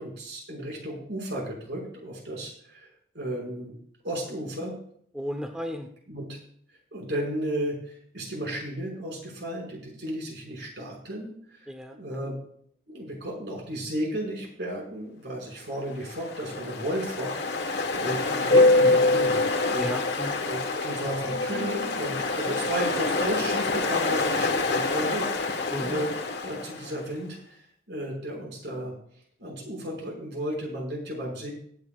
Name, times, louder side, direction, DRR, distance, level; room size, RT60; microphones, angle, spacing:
voice 1, 0.0-2.9 3.1-3.7 4.0-4.7 6.1-6.4 6.9-12.4 12.9-19.9 20.4-26.1 26.4-27.6 27.9-28.9 29.4-31.5, right 1 dB, 75° right, -1 dB, 5.7 m, -33 dB
voice 2, 5.1-5.9 11.7-12.3 18.9-19.0 19.7-20.4 25.7-26.0, equal, 5° right, 3 dB, 0.9 m, -34 dB
Ocean, 15.9-27.0, left 3 dB, 80° left, 1.4 m, -25 dB
23.5 x 9.3 x 2.4 m, 0.64 s
head